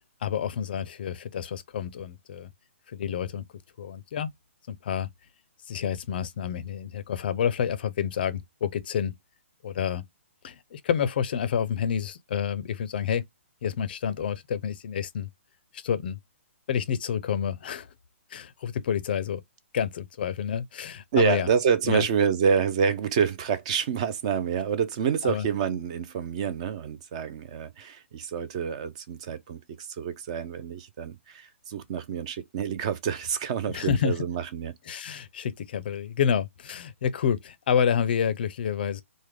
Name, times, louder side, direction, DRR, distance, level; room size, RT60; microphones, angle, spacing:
voice 1, 0.2-2.5 2.9-3.4 3.8-4.3 4.7-5.1 5.7-9.1 9.6-10.0 10.4-13.2 13.6-15.3 15.7-16.2 16.7-17.9 18.3-19.4 19.7-21.5 21.9-22.0 25.2-25.5 33.7-34.2 34.9-39.0, left 8 dB, 45° left, 0.4 m, -28 dB
voice 2, 21.1-34.7, right 7 dB, 30° right, 0.4 m, -27 dB
3.4 x 2.1 x 3.1 m
hypercardioid pair, 160°, 7 cm